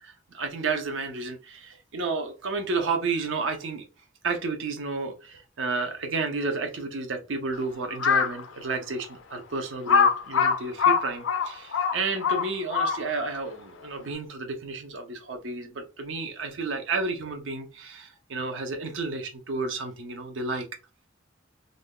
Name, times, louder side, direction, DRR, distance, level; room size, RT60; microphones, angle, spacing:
voice 1, 0.3-3.8 4.2-20.7, right 3 dB, 70° right, 0.6 m, -31 dB
Crow, 7.9-8.4 9.0-9.1 9.9-13.3, left 6 dB, 75° left, 0.4 m, -23 dB
2.5 x 2.3 x 3.5 m
head